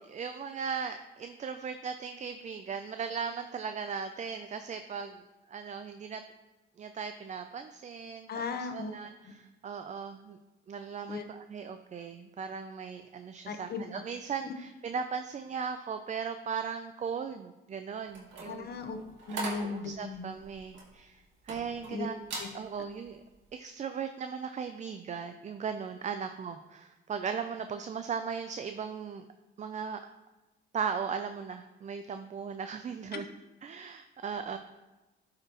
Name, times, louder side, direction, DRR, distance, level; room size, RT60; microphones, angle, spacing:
voice 1, 0.1-5.2 5.5-6.2 6.8-10.4 10.7-18.7 19.3-22.1 22.5-23.2 23.5-29.3 29.6-30.0 30.7-33.3 33.6-34.6, right 6 dB, 35° right, 8 dB, 0.4 m, -38 dB
voice 2, 8.3-8.9 9.3-9.4 11.1-11.2 13.5-13.8 18.5-20.3 21.9-22.1 22.4-22.5 33.1-33.2, left 4 dB, 55° left, 7 dB, 0.9 m, -37 dB
sound 1, 18.1-21.9 22.2-22.6 23.0-23.3, right 2 dB, 75° right, 2.0 m, -41 dB
12.0 x 4.9 x 3.0 m, 1.1 s
cardioid pair, 90°, 20 cm